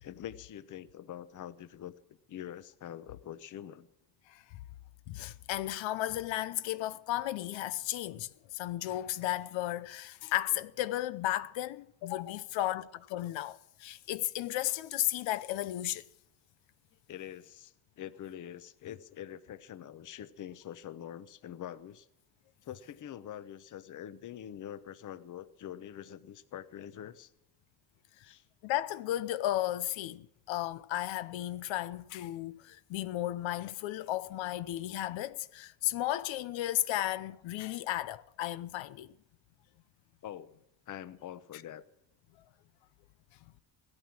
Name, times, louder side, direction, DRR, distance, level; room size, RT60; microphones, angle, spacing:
voice 1, 0.0-1.9 2.3-3.9 17.1-22.1 22.6-27.3 28.2-28.4 40.2-40.5 40.9-41.8, left 10 dB, 45° left, 0.9 m, -45 dB
voice 2, 5.1-16.1 28.6-39.1, left 14 dB, 80° left, 0.9 m, -34 dB
17.0 x 13.0 x 6.1 m
cardioid pair, 145°, 45 cm